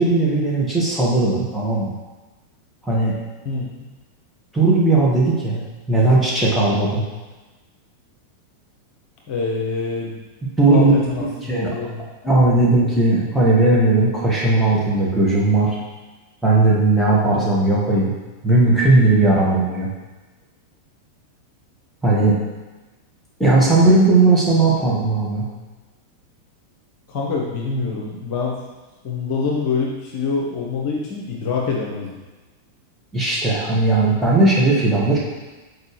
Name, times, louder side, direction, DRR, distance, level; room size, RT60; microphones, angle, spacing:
voice 1, 0.0-1.9 2.8-3.1 4.5-5.6 5.9-7.0 10.6-10.9 11.5-11.7 12.2-15.7 16.4-18.1 18.4-19.9 22.0-22.3 23.4-25.5 33.1-35.2, right 2 dB, ahead, -7 dB, 1.7 m, -17 dB
voice 2, 3.4-3.8 9.3-10.2 10.7-12.0 27.1-28.6 29.0-32.2, left 4 dB, 45° left, -2 dB, 1.0 m, -25 dB
7.1 x 4.7 x 3.3 m, 1.2 s
figure-of-eight pair, 90°, 0 cm